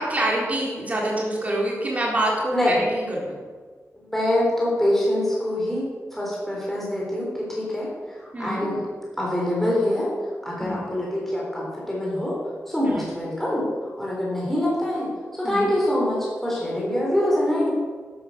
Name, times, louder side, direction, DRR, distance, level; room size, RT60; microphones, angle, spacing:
voice 1, 0.0-3.3 8.3-8.7 10.6-10.8 12.8-13.0 15.4-15.7, right 1 dB, 25° right, -3 dB, 4.0 m, -26 dB
voice 2, 4.0-8.8 9.2-10.1 10.4-12.4 12.7-13.7 14.0-17.7, left 1 dB, 5° left, -5 dB, 4.0 m, -25 dB
12.5 x 11.5 x 6.8 m, 1.5 s
wide cardioid pair, 175°, 5 cm